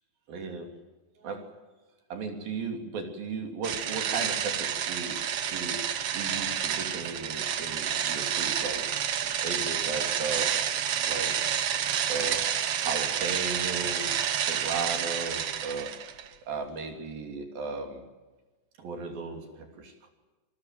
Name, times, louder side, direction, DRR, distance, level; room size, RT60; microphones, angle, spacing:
voice 1, 0.3-0.7 1.2-1.5 2.1-8.9 9.4-10.6 11.1-11.4 11.7-12.5 12.8-16.0 16.5-18.0 18.8-20.1, right 4 dB, 65° right, 5 dB, 4.5 m, -36 dB
sound 1, 3.6-16.3, right 9 dB, 85° right, 1.3 m, -29 dB
27.0 x 19.0 x 7.5 m, 1.2 s
omnidirectional pair, 4.6 m